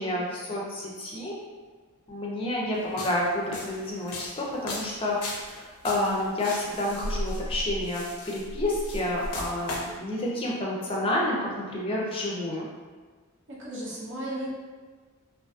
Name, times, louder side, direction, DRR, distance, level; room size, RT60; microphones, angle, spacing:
voice 1, 0.0-1.3 2.1-12.7, left 1 dB, 25° left, -4 dB, 0.4 m, -29 dB
sound 1, 2.8-10.0, left 1 dB, 85° left, 0.4 m, -36 dB
voice 2, 13.5-14.5, right 1 dB, 55° right, -5 dB, 0.7 m, -35 dB
2.5 x 2.4 x 2.4 m, 1.4 s
head